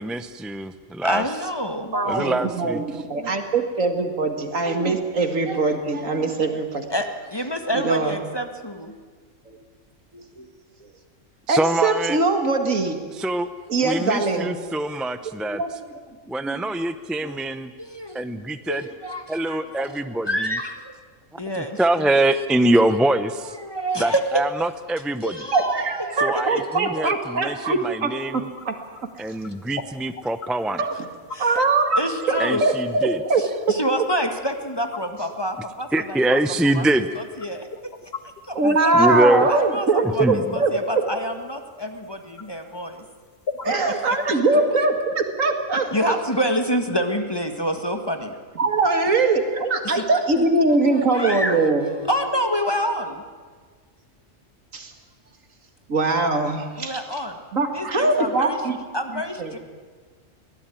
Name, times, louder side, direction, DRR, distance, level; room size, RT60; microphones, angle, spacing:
voice 1, 0.0-1.3 2.1-3.0 11.5-12.2 13.1-13.5 13.8-15.6 16.3-17.7 18.1-18.8 19.3-20.6 21.3-23.6 24.0-25.5 26.2-28.5 29.2-30.8 32.4-33.2 35.9-37.1 38.6-39.5 40.0-40.6, right 1 dB, ahead, 10 dB, 0.6 m, -24 dB
voice 2, 1.0-1.9 6.9-8.9 17.8-18.2 18.7-19.9 20.3-20.9 21.4-22.1 23.6-24.2 25.2-26.2 29.5-29.6 31.3-31.6 32.0-32.6 33.4-36.4 36.7-36.9 37.1-37.7 38.4-38.9 39.5-43.0 43.6-44.0 45.9-48.3 49.8-50.1 51.1-51.6 52.0-53.2 56.8-57.4 57.7-58.6 58.9-59.6, equal, 20° left, 6 dB, 1.6 m, -27 dB
voice 3, 1.9-6.8 7.7-8.2 9.5-9.6 10.1-10.5 11.5-13.0 13.7-14.6 15.6-15.7 16.4-16.5 17.2-17.4 25.5-28.8 30.8-30.9 31.4-32.0 32.3-33.7 38.5-40.7 43.6-45.9 48.6-51.9 54.7-54.9 55.9-57.0 57.5-58.8 59.4-59.5, right 3 dB, 80° right, 6 dB, 2.5 m, -22 dB
sound 1, 28.4-28.7 29.0-29.1 29.4-29.5 29.8-29.9 30.2-32.5 32.9-33.0 33.7-34.3 34.9-35.3 36.0-36.1 36.7-36.8 37.0-38.4 38.9-39.3 39.7-39.9 40.4-40.5 41.1-41.2 42.0-42.1 42.4-42.5 43.5-43.9 44.2-44.3, left 5 dB, 50° left, 1.5 m, -35 dB
23.0 x 17.5 x 9.1 m, 1.5 s
omnidirectional pair, 1.4 m